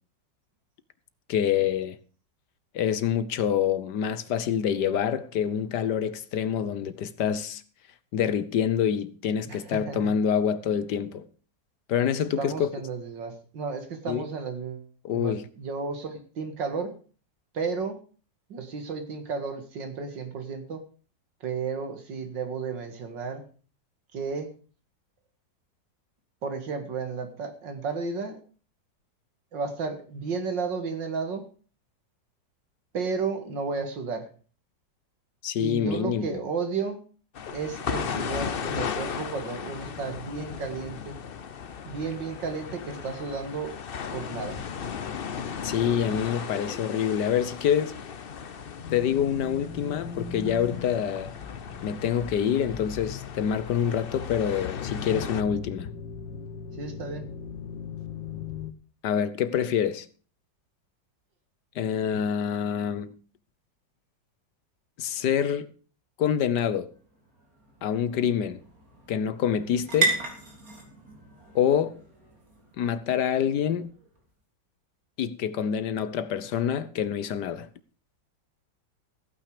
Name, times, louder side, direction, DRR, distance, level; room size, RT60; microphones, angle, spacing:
voice 1, 1.3-2.0 2.7-7.6 8.1-11.2 11.9-12.7 14.1-14.3 15.0-15.4 35.4-36.4 45.6-47.9 48.9-51.3 51.8-55.9 59.0-60.1 61.7-63.1 65.0-65.7 66.2-66.9 67.8-68.6 69.1-70.2 71.5-71.9 72.8-73.9 75.2-77.7, left 8 dB, 70° left, 1.5 m, -26 dB
voice 2, 9.5-10.2 12.4-14.9 15.1-17.0 17.5-18.0 18.5-20.8 21.4-23.5 24.1-24.6 26.4-28.4 29.5-31.5 32.9-34.3 35.6-37.0 37.5-41.2 41.8-43.8 44.1-44.6 56.7-57.3, right 5 dB, 80° right, 2.6 m, -33 dB
sound 1, 37.4-55.4, left 7 dB, 50° left, 0.6 m, -36 dB
sound 2, 48.8-58.7, left 6 dB, 85° left, 1.9 m, -38 dB
sound 3, 66.4-74.2, right 3 dB, 50° right, 3.7 m, -35 dB
15.0 x 9.1 x 5.0 m
omnidirectional pair, 1.9 m